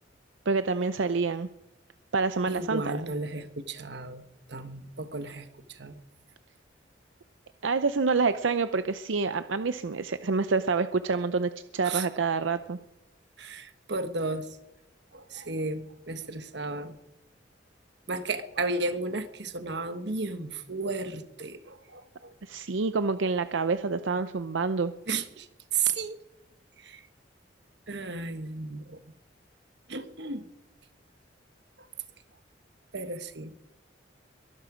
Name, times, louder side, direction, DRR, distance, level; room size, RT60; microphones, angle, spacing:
voice 1, 0.5-1.5 2.1-3.0 7.6-12.8 22.4-24.9, right 4 dB, 80° right, 11 dB, 0.6 m, -27 dB
voice 2, 2.5-6.0 11.8-12.1 13.4-14.5 15.1-16.9 18.1-22.3 25.1-25.5 25.7-26.2 26.8-27.0 27.9-29.0 29.9-30.5 31.8-31.9 32.9-33.5, right 3 dB, 60° right, 9 dB, 1.4 m, -33 dB
23.0 x 12.0 x 5.1 m, 0.94 s
head